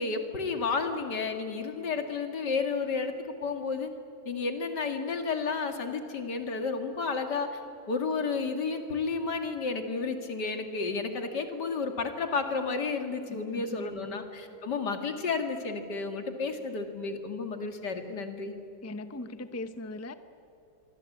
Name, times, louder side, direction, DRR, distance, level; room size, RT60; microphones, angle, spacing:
voice 1, 0.0-3.9 4.2-7.6 7.9-18.5, left 4 dB, 80° left, 6 dB, 2.8 m, -32 dB
voice 2, 13.3-14.2 18.8-20.1, left 2 dB, 15° left, 11 dB, 0.7 m, -40 dB
25.0 x 24.5 x 8.6 m, 2.8 s
omnidirectional pair, 1.8 m